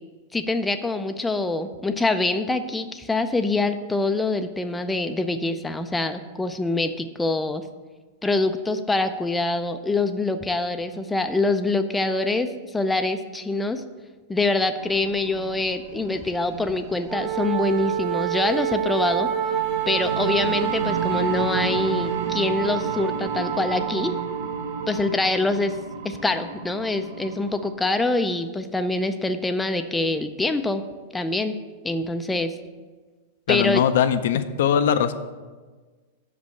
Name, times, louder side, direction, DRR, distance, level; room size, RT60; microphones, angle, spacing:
voice 1, 0.3-7.7 8.2-13.8 14.3-19.3 19.9-24.2 24.9-25.8 26.0-30.8 31.1-31.6 31.8-32.5 33.5-33.8, left 2 dB, 10° left, 7 dB, 0.4 m, -25 dB
sound 1, 14.8-27.7, right 4 dB, 70° right, 0.9 m, -35 dB
Wind instrument woodwind instrument, 17.1-25.1, right 9 dB, 35° right, 0.9 m, -27 dB
voice 2, 33.5-35.1, left 9 dB, 70° left, 10 dB, 0.5 m, -21 dB
6.2 x 5.2 x 6.9 m, 1.4 s
hypercardioid pair, 130°, 0 cm